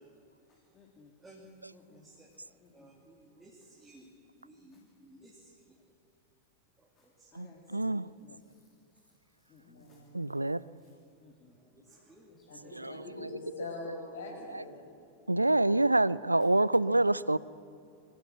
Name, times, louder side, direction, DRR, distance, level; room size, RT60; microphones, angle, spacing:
voice 1, 0.5-1.1 1.7-2.9 3.9-4.0 4.7-4.8 6.9-10.0 10.3-10.9 11.2-11.5 12.3-13.0, left 4 dB, 30° left, 2.6 m, -61 dB
voice 2, 1.2-1.5 1.9-5.6 6.8-7.3 12.1-12.3, right 1 dB, 10° right, 2.6 m, -57 dB
voice 3, 7.3-8.1 10.1-10.6 12.7-13.4 14.5-14.7 15.3-17.4, right 2 dB, 85° right, 0.4 m, -27 dB
voice 4, 9.6-10.3 12.5-14.9 16.5-16.8, left 2 dB, 65° left, 6.3 m, -44 dB
23.0 x 15.0 x 7.9 m
figure-of-eight pair, 90°, 0 cm